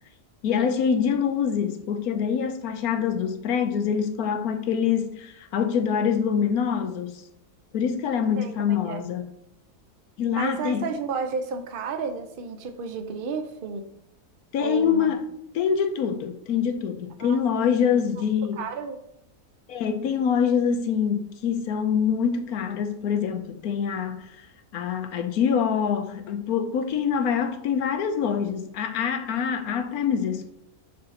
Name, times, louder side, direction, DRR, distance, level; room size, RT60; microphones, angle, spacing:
voice 1, 0.4-7.2 7.7-9.3 10.2-10.8 14.5-15.2 15.5-18.6 19.7-24.3 24.7-30.5, left 7 dB, 75° left, 1.2 m, -25 dB
voice 2, 8.4-9.0 10.3-13.9 14.6-15.2 17.2-17.6 18.5-19.0, right 5 dB, 45° right, 0.7 m, -32 dB
5.6 x 3.9 x 5.8 m
omnidirectional pair, 1.6 m